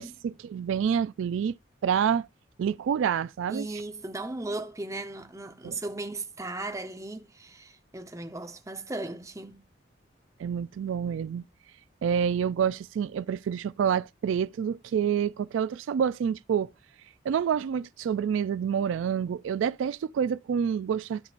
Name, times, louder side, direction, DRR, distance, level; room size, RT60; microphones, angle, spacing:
voice 1, 0.0-1.6 1.8-2.3 2.6-3.7 5.6-5.8 10.4-11.4 12.0-16.7 17.3-21.2, right 7 dB, 80° right, 0.3 m, -28 dB
voice 2, 3.5-9.6, right 2 dB, 15° right, 0.8 m, -37 dB
13.5 x 5.2 x 2.5 m
head